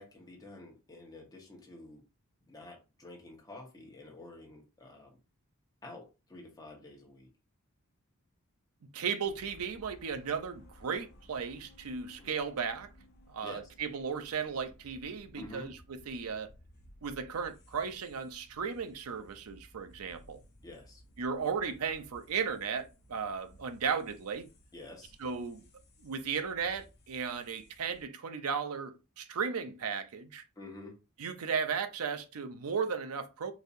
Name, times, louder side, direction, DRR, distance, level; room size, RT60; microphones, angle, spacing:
voice 1, 0.0-2.0 2.5-5.2 5.8-7.3 12.2-12.3 13.4-13.7 15.3-15.7 20.6-21.0 24.7-25.1 30.6-30.9, left 2 dB, 15° left, 1.0 m, -49 dB
voice 2, 8.9-12.9 13.3-16.5 17.0-20.4 21.2-24.5 25.2-25.6 26.0-30.4 31.2-33.5, right 6 dB, 80° right, 0.6 m, -35 dB
sound 1, 9.2-28.0, equal, 50° left, 0.8 m, -59 dB
4.0 x 2.7 x 2.6 m
head